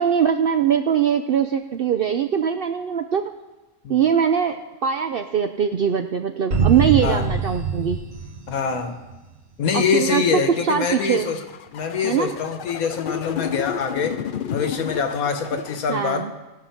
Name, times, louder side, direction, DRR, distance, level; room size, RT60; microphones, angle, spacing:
voice 1, 0.0-3.2 3.9-8.0 9.7-10.2 10.6-11.3 12.0-12.3 15.9-16.3, right 8 dB, 70° right, 7 dB, 0.5 m, -21 dB
sound 1, 6.5-9.3, right 5 dB, 50° right, 1.5 m, -24 dB
voice 2, 7.0-7.4 8.5-9.0 9.6-11.4 11.7-14.2 14.5-16.3, left 6 dB, 80° left, 7 dB, 1.5 m, -24 dB
sound 2, 10.5-15.8, left 8 dB, 60° left, 0.5 m, -32 dB
17.5 x 5.9 x 5.8 m, 1.1 s
omnidirectional pair, 1.5 m